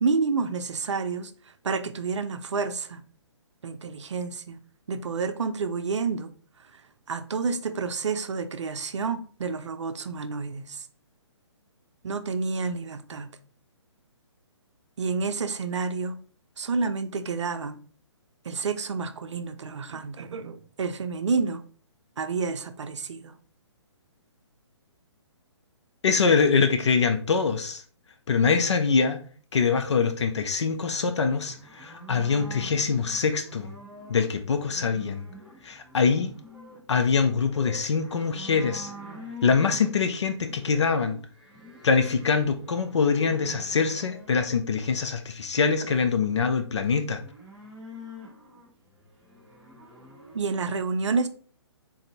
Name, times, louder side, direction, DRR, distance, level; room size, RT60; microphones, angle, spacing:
voice 1, 0.0-1.3 1.6-3.0 3.6-4.6 4.9-6.3 7.1-10.9 12.0-13.3 15.0-16.2 16.6-17.8 18.5-21.6 22.2-23.4 50.3-51.3, right 4 dB, 75° right, 0.5 m, -29 dB
voice 2, 26.0-27.8 28.3-29.2 29.5-33.7 34.1-35.2 35.6-36.3 36.9-38.9 39.4-41.2 41.8-47.2, left 5 dB, 70° left, 0.5 m, -24 dB
sound 1, 31.3-44.5 47.0-50.4, equal, 5° right, 1.1 m, -46 dB
3.9 x 2.5 x 2.8 m
figure-of-eight pair, 135°, 15 cm